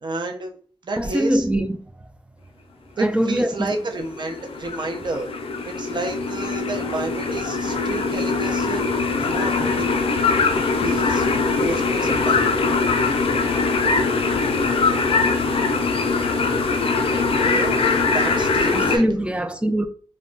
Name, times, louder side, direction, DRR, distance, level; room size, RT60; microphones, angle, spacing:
voice 1, 0.0-0.6 0.8-1.4 3.0-5.3 5.7-10.1 10.8-11.3 11.6-12.5 17.5-19.0, right 2 dB, 50° right, 0.6 m, -30 dB
voice 2, 1.0-2.1 3.0-3.7 18.7-19.9, equal, 10° right, 0.3 m, -23 dB
sound 1, 3.9-19.0, left 4 dB, 70° left, 0.4 m, -22 dB
2.2 x 2.1 x 3.7 m
cardioid pair, 65°, 10 cm